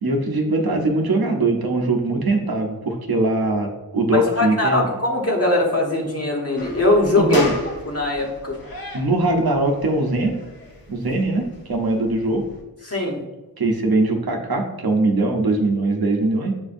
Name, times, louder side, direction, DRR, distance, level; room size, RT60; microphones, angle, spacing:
voice 1, 0.0-4.8 7.2-7.5 8.9-10.4 10.9-12.4 13.6-16.5, right 2 dB, 70° right, 2 dB, 0.8 m, -21 dB
voice 2, 4.1-8.6 12.8-13.2, left 2 dB, 40° left, -1 dB, 1.2 m, -21 dB
sound 1, 6.6-12.6, left 1 dB, 65° left, 1.1 m, -35 dB
7.3 x 2.6 x 2.5 m, 1.1 s
cardioid pair, 45°, 38 cm